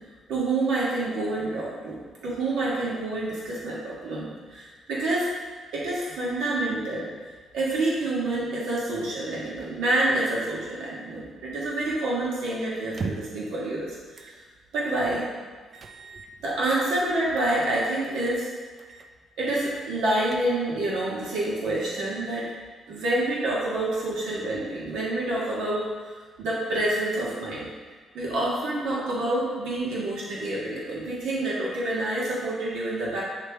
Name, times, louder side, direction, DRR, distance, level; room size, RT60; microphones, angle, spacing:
voice 1, 0.3-5.3 5.7-7.1 7.5-13.8 14.1-14.3 14.7-15.3 16.4-18.5 19.4-22.5 22.9-25.9 26.4-27.7 28.1-33.2, right 2 dB, 85° right, -6 dB, 1.5 m, -27 dB
sound 1, 12.8-13.5 14.2-14.4 14.8-14.9 15.7-16.8 17.4-17.7 18.0-18.4 18.8-19.1 19.4-19.5 20.0-20.8, right 4 dB, 45° right, 0.5 m, -39 dB
8.2 x 3.4 x 3.4 m, 1.5 s
cardioid pair, 90°, 0 cm